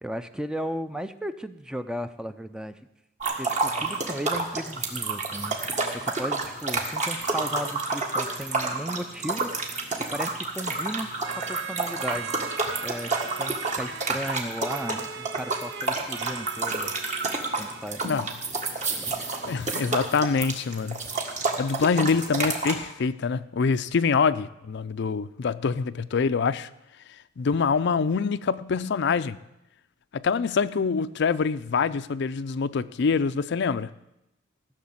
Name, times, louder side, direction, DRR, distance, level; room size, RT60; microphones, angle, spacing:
voice 1, 0.0-2.8 3.4-5.6 5.9-9.5 10.1-11.1 11.4-12.4 12.8-16.9 17.6-18.0 18.9-19.1, equal, 5° right, 0.5 m, -35 dB
sound 1, 3.2-22.7, right 3 dB, 40° right, 1.7 m, -29 dB
sound 2, 11.2-18.1, right 8 dB, 60° right, 0.6 m, -40 dB
voice 2, 19.5-21.0 21.6-26.7 27.4-29.4 30.1-33.9, left 5 dB, 60° left, 0.4 m, -25 dB
15.5 x 6.5 x 8.7 m
head